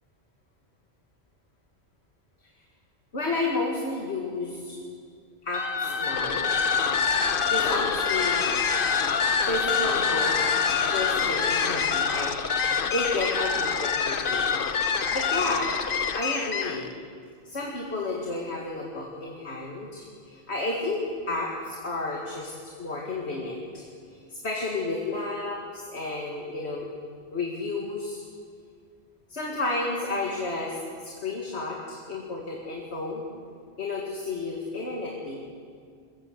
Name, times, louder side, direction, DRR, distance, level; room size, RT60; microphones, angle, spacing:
voice 1, 3.1-4.8 5.4-6.5 7.5-8.5 9.4-10.4 10.9-14.6 15.1-15.7 16.1-16.9 17.5-22.5 22.8-23.8 24.1-26.9 27.3-28.2 29.3-33.2 33.8-35.4, left 2 dB, 75° left, -1 dB, 2.4 m, -31 dB
sound 1, 5.5-16.9, left 6 dB, 55° left, 1.0 m, -25 dB
22.0 x 15.0 x 8.0 m, 2.2 s
omnidirectional pair, 1.1 m